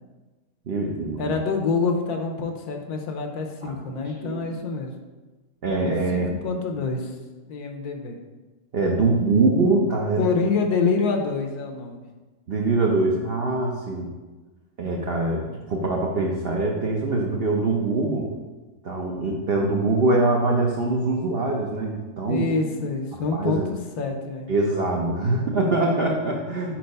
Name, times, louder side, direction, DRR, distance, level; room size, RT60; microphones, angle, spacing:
voice 1, 0.7-1.3 3.6-4.4 5.6-6.3 8.7-10.2 12.5-14.1 14.8-18.3 18.8-22.4 23.3-23.6 24.5-26.8, right 2 dB, 70° right, -1 dB, 0.5 m, -23 dB
voice 2, 1.2-4.9 6.1-7.1 7.5-8.2 10.2-12.0 22.2-24.5 26.7-26.8, left 4 dB, 70° left, 3 dB, 1.1 m, -26 dB
4.7 x 4.5 x 5.2 m, 1.2 s
omnidirectional pair, 1.8 m